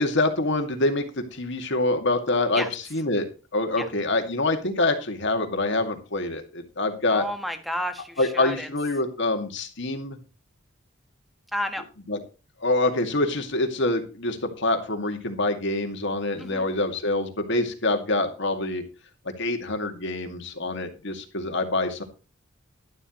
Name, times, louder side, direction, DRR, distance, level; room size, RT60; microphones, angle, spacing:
voice 1, 0.0-2.6 2.9-3.3 3.5-7.2 8.2-10.2 12.1-12.2 12.6-18.8 19.4-22.0, left 2 dB, 65° left, 6 dB, 2.3 m, -25 dB
voice 2, 7.1-8.7 11.5-11.9 16.4-16.6, equal, ahead, 7 dB, 1.5 m, -31 dB
12.0 x 12.0 x 3.1 m, 0.32 s
head